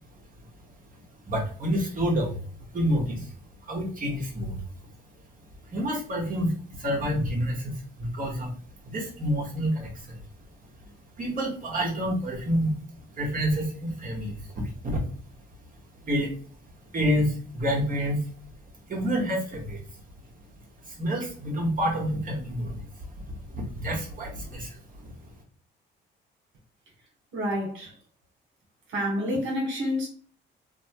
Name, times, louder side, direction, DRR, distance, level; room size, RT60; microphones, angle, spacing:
voice 1, 1.2-2.4 2.7-3.3 3.6-4.6 5.7-8.5 8.8-10.2 11.2-12.8 13.2-15.0 16.1-16.3 16.9-18.3 18.9-19.8 20.8-25.1, equal, 45° right, 1.2 m, -28 dB
voice 2, 27.3-27.9 28.9-30.1, equal, 80° right, 1.3 m, -28 dB
2.9 x 2.1 x 2.9 m
cardioid pair, 90°, 20 cm